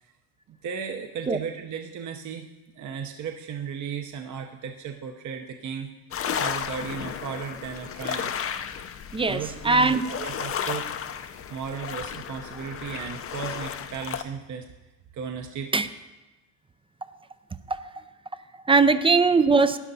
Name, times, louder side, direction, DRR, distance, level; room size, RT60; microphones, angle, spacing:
voice 1, 0.5-2.5 2.7-6.0 6.4-8.4 9.2-11.0 11.5-14.7 15.1-15.8, right 7 dB, 45° right, 4 dB, 0.9 m, -35 dB
sound 1, 6.1-14.2, left 8 dB, 35° left, 0.6 m, -33 dB
voice 2, 9.1-10.1 15.7-15.9 17.7-18.1 18.3-19.8, right 4 dB, 15° right, 12 dB, 0.4 m, -21 dB
12.0 x 10.0 x 4.1 m, 1.1 s
cardioid pair, 100°, 41 cm